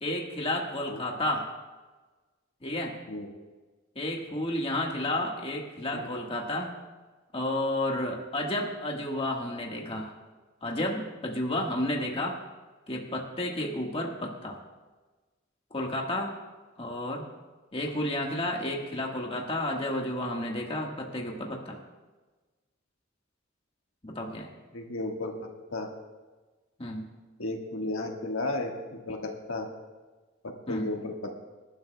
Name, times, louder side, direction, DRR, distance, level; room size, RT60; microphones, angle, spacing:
voice 1, 0.0-1.5 2.6-2.9 3.9-6.8 7.3-10.1 10.6-12.4 12.9-14.6 15.7-16.3 16.8-17.3 17.7-21.8 24.0-24.5 26.8-27.1 30.7-30.9, left 1 dB, 30° left, 0 dB, 1.5 m, -31 dB
voice 2, 24.7-25.9 27.4-29.7 30.4-31.3, left 2 dB, 90° left, 2 dB, 1.5 m, -34 dB
25.5 x 11.5 x 2.3 m, 1.3 s
head